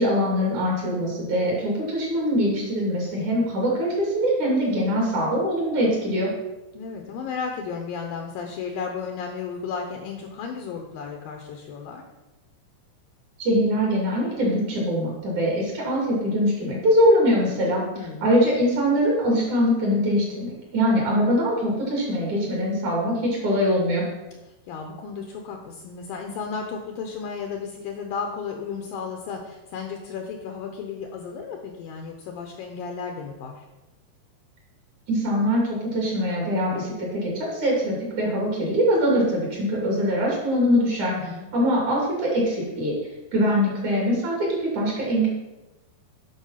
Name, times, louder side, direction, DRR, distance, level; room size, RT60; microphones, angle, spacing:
voice 1, 0.0-6.3 13.4-17.8 18.2-24.0 35.1-41.1 41.5-43.0 43.3-45.3, equal, 50° right, -3 dB, 3.6 m, -23 dB
voice 2, 6.7-12.0 18.0-18.3 24.4-33.7 41.1-41.5, left 5 dB, 75° left, 3 dB, 2.3 m, -34 dB
11.0 x 5.9 x 5.7 m, 1.0 s
omnidirectional pair, 4.8 m